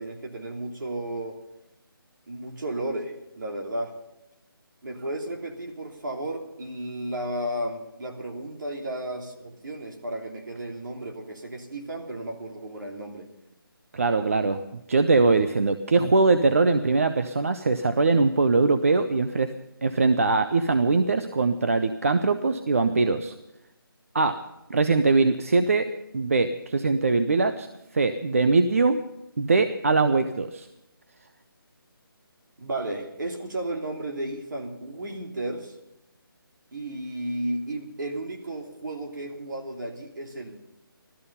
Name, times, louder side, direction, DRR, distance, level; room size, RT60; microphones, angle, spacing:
voice 1, 0.0-1.4 2.3-3.9 4.8-13.3 32.6-35.7 36.7-40.6, right 1 dB, 55° right, 1 dB, 3.1 m, -33 dB
voice 2, 13.9-19.5 19.8-23.3 24.1-24.4 24.7-27.7 27.9-29.0 29.4-30.7, right 3 dB, 35° right, 9 dB, 0.6 m, -22 dB
16.0 x 13.5 x 5.6 m, 0.88 s
hypercardioid pair, 175°, 12 cm